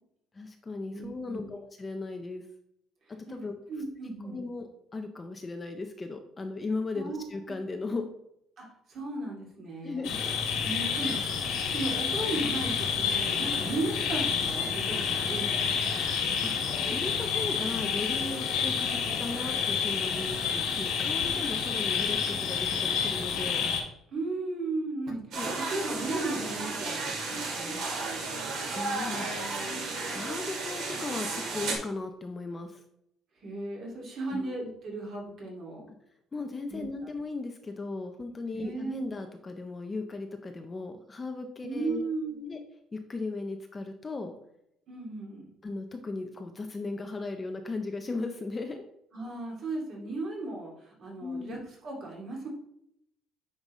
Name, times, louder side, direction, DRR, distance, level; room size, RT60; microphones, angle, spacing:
voice 1, 0.3-2.4 3.3-3.5 4.2-8.0 9.8-10.2 16.4-23.6 25.3-25.5 28.7-29.6 30.0-32.8 34.3-34.5 36.3-42.1 42.5-42.6 42.9-44.3 45.6-48.8 51.2-51.6, left 3 dB, 15° left, 5 dB, 0.5 m, -37 dB
voice 2, 0.9-1.6 3.7-4.5 6.9-7.3 8.6-10.2 10.6-11.4 11.7-16.0 24.1-28.1 33.4-35.9 36.7-36.9 38.5-39.1 41.6-42.6 44.9-45.5 49.1-52.5, right 2 dB, 40° right, -2 dB, 2.2 m, -36 dB
sound 1, 10.0-23.8, left 6 dB, 85° left, 1.7 m, -29 dB
sound 2, 25.3-31.7, right 3 dB, 60° right, 1.9 m, -33 dB
9.0 x 5.2 x 3.1 m, 0.78 s
cardioid pair, 175°, 0 cm